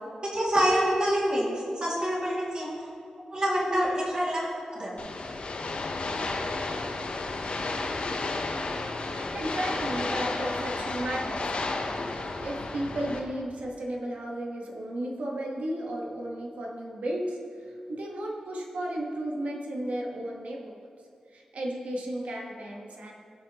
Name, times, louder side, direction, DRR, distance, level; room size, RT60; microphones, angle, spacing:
voice 1, 0.2-2.7 3.3-4.5 4.7-5.0, equal, 40° right, -5 dB, 2.2 m, -26 dB
sound 1, 5.0-13.2, left 3 dB, 60° left, 0.7 m, -32 dB
voice 2, 9.1-11.8 12.1-20.7 21.3-23.1, right 1 dB, 90° right, -1 dB, 1.3 m, -34 dB
16.0 x 5.8 x 2.9 m, 2.4 s
wide cardioid pair, 145°, 2 cm